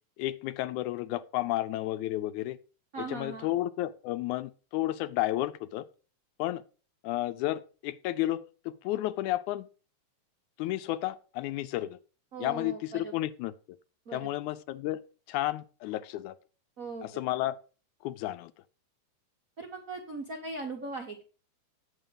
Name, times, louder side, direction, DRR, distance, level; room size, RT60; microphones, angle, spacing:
voice 1, 0.2-2.6 3.0-5.9 6.4-6.6 7.0-9.7 10.6-12.0 12.4-13.5 14.1-15.0 15.3-16.4 17.0-17.6 18.0-18.5, left 15 dB, 80° left, 2.0 m, -32 dB
voice 2, 2.9-3.5 12.3-13.1 14.1-14.3 16.8-17.1 19.6-21.2, right 3 dB, 60° right, 0.8 m, -39 dB
9.0 x 6.8 x 5.4 m
omnidirectional pair, 3.5 m